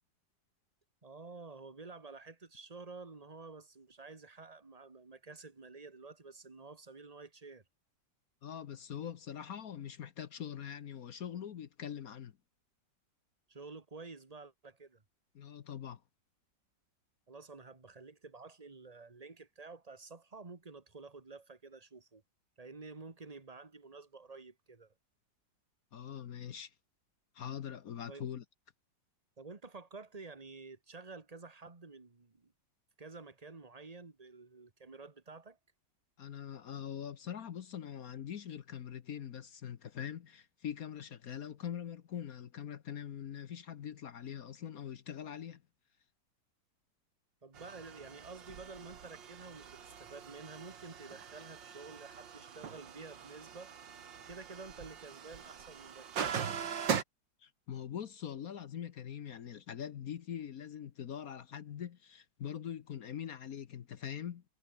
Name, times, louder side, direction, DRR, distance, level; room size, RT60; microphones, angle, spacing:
voice 1, 1.0-7.6 13.5-15.0 17.3-22.2 22.6-24.9 28.1-28.3 29.4-32.5 33.0-35.6 47.4-53.7 54.3-56.3, right 3 dB, 20° right, 1.8 m, -50 dB
voice 2, 8.4-12.3 15.3-16.0 25.9-26.7 27.3-28.4 36.2-45.6 57.4-64.4, left 9 dB, 55° left, 1.3 m, -43 dB
sound 1, 47.5-57.0, right 7 dB, 85° right, 2.4 m, -41 dB
omnidirectional pair, 2.0 m